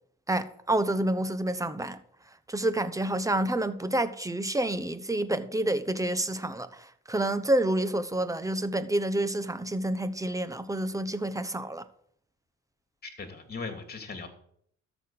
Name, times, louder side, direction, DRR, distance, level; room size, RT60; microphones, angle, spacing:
voice 1, 0.3-2.0 2.5-11.9, right 1 dB, 10° right, 1.0 m, -28 dB
voice 2, 13.0-14.3, left 4 dB, 30° left, 2.7 m, -38 dB
13.0 x 6.2 x 7.7 m
cardioid pair, 90°, 30 cm